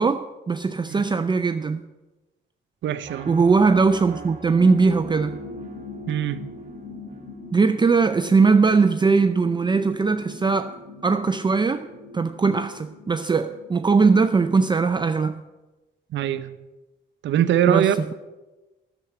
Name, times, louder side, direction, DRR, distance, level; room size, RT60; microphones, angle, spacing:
voice 1, 0.0-1.8 3.3-5.4 7.5-10.8 11.0-11.9 12.1-15.4 17.7-17.9, right 4 dB, 20° right, 0.5 m, -20 dB
voice 2, 2.8-3.3 6.1-6.5 16.1-16.5 17.2-18.0, right 10 dB, 70° right, 0.8 m, -22 dB
sound 1, 3.0-9.0, right 4 dB, 40° right, 1.9 m, -44 dB
sound 2, 4.6-15.0, left 2 dB, 35° left, 3.7 m, -41 dB
10.5 x 7.2 x 7.9 m
cardioid pair, 90°, 20 cm